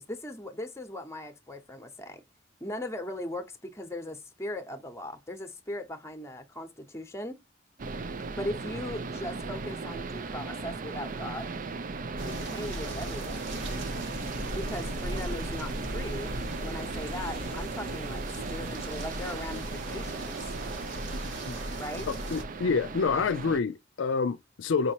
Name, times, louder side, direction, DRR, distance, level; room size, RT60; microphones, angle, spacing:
voice 1, 0.0-2.2 2.6-7.4 8.4-11.5 12.2-13.4 14.5-18.2 18.5-20.4 21.8-22.1, left 1 dB, 15° left, 0.8 m, -39 dB
sound 1, 7.8-23.6, right 3 dB, 45° right, 0.5 m, -37 dB
sound 2, 12.2-22.4, equal, 80° right, 1.5 m, -38 dB
voice 2, 22.3-24.9, left 5 dB, 75° left, 0.4 m, -27 dB
5.1 x 2.9 x 2.8 m
head